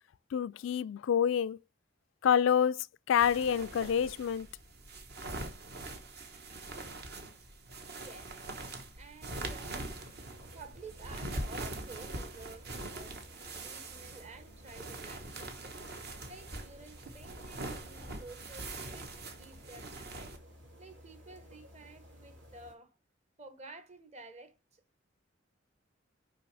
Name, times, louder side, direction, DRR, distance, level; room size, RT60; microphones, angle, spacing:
voice 1, 0.3-1.6 2.2-4.5, left 8 dB, 85° left, 0.3 m, -28 dB
sound 1, 3.2-20.4, right 2 dB, 55° right, 1.3 m, -43 dB
voice 2, 7.9-8.4 9.0-10.0 10.5-15.8 16.3-19.1 19.4-20.3 20.8-23.0 23.4-24.8, right 3 dB, 35° right, 1.1 m, -52 dB
sound 2, 10.2-22.7, equal, 75° right, 3.2 m, -55 dB
6.1 x 5.1 x 3.3 m
head